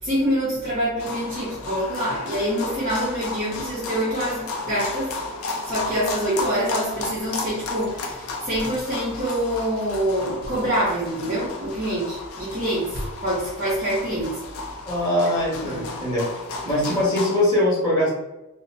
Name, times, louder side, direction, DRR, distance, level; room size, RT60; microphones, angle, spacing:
voice 1, 0.0-5.1 5.6-14.4 15.6-15.8, equal, 35° right, -7 dB, 0.9 m, -26 dB
sound 1, 1.0-17.4, left 3 dB, 75° left, 0.4 m, -33 dB
voice 2, 14.9-16.2 16.6-18.1, left 1 dB, 20° left, -8 dB, 1.3 m, -22 dB
2.8 x 2.1 x 2.7 m, 0.96 s
head